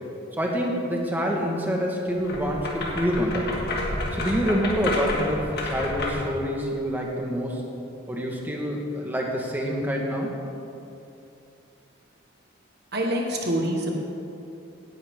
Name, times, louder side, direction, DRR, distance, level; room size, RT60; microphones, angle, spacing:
voice 1, 0.4-3.5 4.1-7.6 8.1-10.3, equal, 10° right, -1 dB, 1.6 m, -27 dB
sound 1, 2.2-6.3, left 1 dB, 55° left, 2.1 m, -30 dB
voice 2, 12.9-14.0, right 1 dB, 55° right, 0 dB, 1.4 m, -25 dB
17.0 x 11.0 x 3.7 m, 2.8 s
head